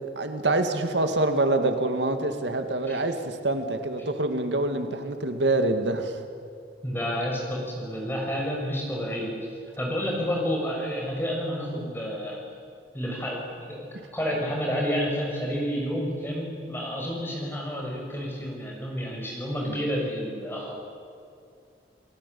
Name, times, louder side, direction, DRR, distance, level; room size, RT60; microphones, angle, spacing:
voice 1, 0.0-6.2, right 2 dB, 90° right, 6 dB, 2.2 m, -26 dB
voice 2, 6.8-9.3 9.8-12.4 12.9-13.9 14.1-20.8, equal, 10° left, -1 dB, 6.4 m, -30 dB
30.0 x 18.5 x 8.6 m, 2.4 s
head